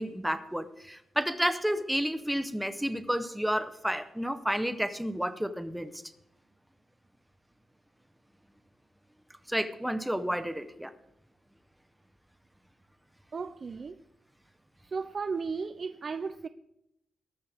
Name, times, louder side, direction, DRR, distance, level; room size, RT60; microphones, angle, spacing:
voice 1, 0.0-5.9 9.5-10.9, equal, ahead, 0.8 m, -31 dB
voice 2, 13.3-14.0 14.9-16.5, right 5 dB, 35° right, 0.5 m, -35 dB
21.0 x 13.0 x 3.5 m
wide cardioid pair, 180°, 0 cm